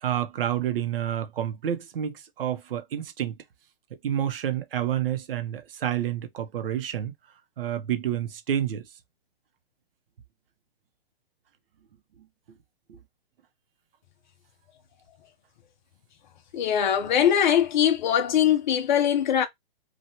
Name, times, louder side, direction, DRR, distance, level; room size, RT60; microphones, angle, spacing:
voice 1, 0.0-3.3 4.0-7.1 7.6-8.8 12.5-12.6 12.9-13.0, right 10 dB, 65° right, 0.8 m, -29 dB
voice 2, 16.5-19.5, left 9 dB, 50° left, 0.8 m, -22 dB
2.9 x 2.4 x 2.9 m
hypercardioid pair, 150°, 30 cm